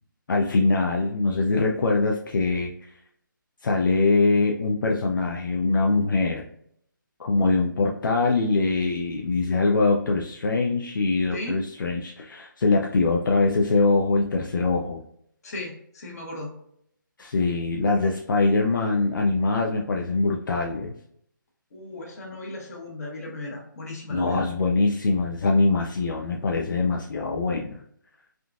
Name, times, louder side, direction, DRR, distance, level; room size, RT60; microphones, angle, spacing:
voice 1, 0.3-2.9 3.6-6.4 7.2-15.0 17.2-20.9 24.1-27.8, left 3 dB, 70° left, 0 dB, 0.5 m, -23 dB
voice 2, 15.4-16.5 21.7-24.5, left 2 dB, 50° left, -1 dB, 1.1 m, -36 dB
3.7 x 2.3 x 2.3 m, 0.69 s
hypercardioid pair, 160°, 11 cm